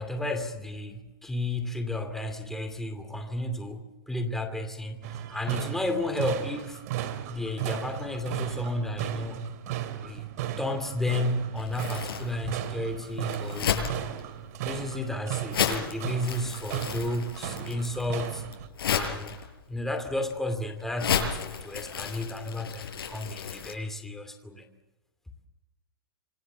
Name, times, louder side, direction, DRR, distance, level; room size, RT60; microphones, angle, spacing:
voice 1, 0.0-3.8 4.1-6.8 7.3-9.5 10.0-13.9 14.6-18.4 18.9-19.3 19.7-24.6, left 1 dB, 5° left, 6 dB, 2.6 m, -32 dB
sound 1, 5.0-18.7, right 12 dB, 45° right, 2.5 m, -35 dB
Crumpling crinkling, 11.6-23.7, left 7 dB, 85° left, 7.3 m, -33 dB
26.5 x 26.0 x 7.2 m, 1.1 s
supercardioid pair, 165°, 12 cm